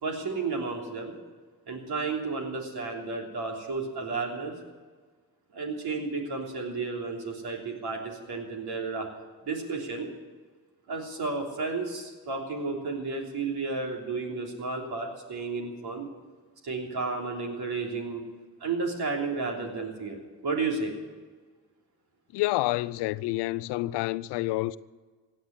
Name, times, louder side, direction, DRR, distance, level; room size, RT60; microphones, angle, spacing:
voice 1, 0.0-1.2 1.7-4.6 5.5-9.1 9.4-10.1 10.9-16.1 16.6-18.2 18.6-20.2 20.4-21.0, right 4 dB, 70° right, 3.4 m, -32 dB
voice 2, 22.3-24.8, left 18 dB, 90° left, 0.5 m, -28 dB
16.5 x 8.7 x 9.6 m
supercardioid pair, 45°, 40 cm